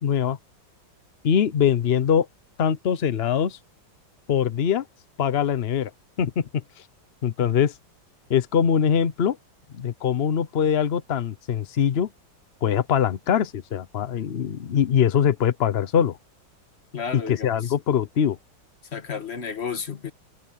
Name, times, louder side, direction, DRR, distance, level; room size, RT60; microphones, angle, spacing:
voice 1, 0.0-0.4 1.2-2.3 2.6-3.6 4.3-4.8 5.2-5.9 6.2-6.6 7.2-7.7 8.3-9.4 9.7-12.1 12.6-16.2 17.3-18.4, left 8 dB, 85° left, 0.5 m, -22 dB
voice 2, 16.9-17.7 18.9-20.1, left 6 dB, 35° left, 1.5 m, -32 dB
omnidirectional pair, 2.2 m